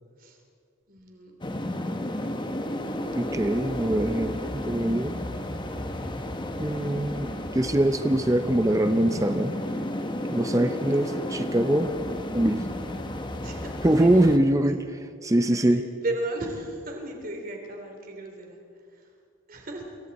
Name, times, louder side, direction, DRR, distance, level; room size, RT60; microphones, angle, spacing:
voice 1, 0.9-1.4 10.5-11.4 13.4-13.7 14.0-14.2 14.6-14.7 15.5-18.6 18.9-19.1 19.5-20.0, right 2 dB, 45° right, 2 dB, 3.3 m, -36 dB
sound 1, 1.4-14.4, left 1 dB, 25° left, 1.1 m, -32 dB
voice 2, 3.1-5.2 6.6-9.6 10.3-11.9 12.3-12.7 13.8-14.8 15.2-15.9, right 1 dB, 15° right, 9 dB, 0.6 m, -23 dB
27.5 x 23.0 x 4.2 m, 2.2 s
head